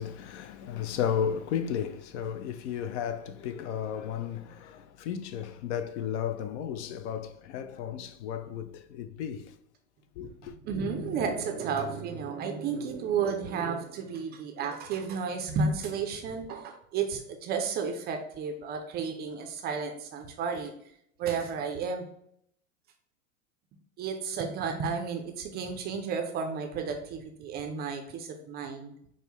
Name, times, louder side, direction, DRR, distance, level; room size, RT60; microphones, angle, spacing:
voice 1, 0.0-9.5 10.2-10.5, left 8 dB, 55° left, 0.5 m, -34 dB
voice 2, 10.2-20.7 21.2-22.1 24.0-28.9, right 5 dB, 25° right, 0.4 m, -32 dB
5.4 x 2.1 x 3.1 m
hypercardioid pair, 105°, 41 cm